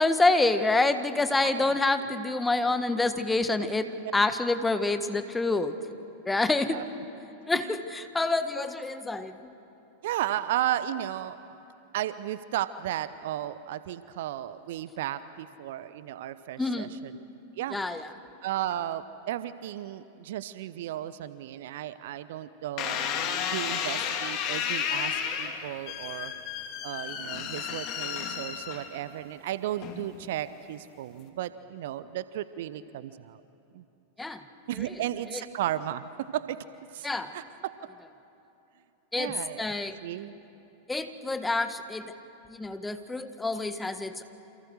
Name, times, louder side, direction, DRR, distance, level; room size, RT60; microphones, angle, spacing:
voice 1, 0.0-5.7 6.2-6.8 7.5-9.5 16.6-16.9 17.7-18.1 34.2-34.4 35.3-35.4 37.0-37.3 39.1-40.0 40.9-42.1 42.5-44.2, left 2 dB, 10° left, 10 dB, 1.6 m, -27 dB
voice 2, 1.4-1.8 6.7-6.9 7.5-7.8 10.0-11.4 11.9-17.2 17.6-17.8 18.4-26.3 26.8-33.4 33.7-33.8 34.7-36.6 36.9-37.1 37.3-37.7 39.2-39.7 40.0-40.3, right 12 dB, 55° right, 15 dB, 0.8 m, -34 dB
sound 1, 22.8-29.2 29.8-30.3, left 8 dB, 40° left, 2.7 m, -32 dB
29.0 x 27.5 x 6.5 m, 2.9 s
figure-of-eight pair, 90°, 0 cm